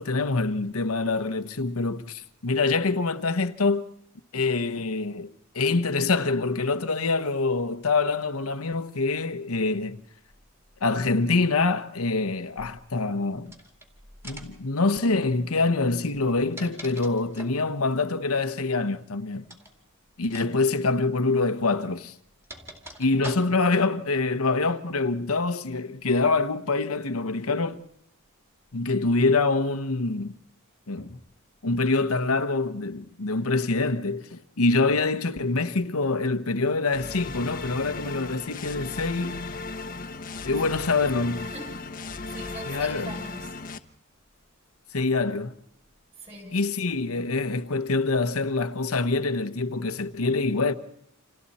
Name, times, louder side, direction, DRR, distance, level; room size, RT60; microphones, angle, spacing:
voice 1, 0.0-3.9 4.3-10.0 10.8-13.5 14.2-19.5 20.2-22.1 23.0-27.8 28.7-30.3 30.9-31.2 31.6-39.5 40.4-41.5 42.7-43.1 44.9-45.5 46.5-50.7, left 3 dB, 75° left, 1.0 m, -25 dB
sound 1, 13.5-13.9 14.2-14.7 16.1-17.6 19.4-19.7 20.2-20.5 20.8-20.9 21.8-23.8, right 1 dB, 10° right, 2.5 m, -43 dB
sound 2, 36.9-43.8, left 3 dB, 40° left, 1.0 m, -36 dB
voice 2, 40.5-41.0 41.4-43.6 46.2-46.6, right 2 dB, 30° right, 7.8 m, -44 dB
29.5 x 27.5 x 4.3 m
head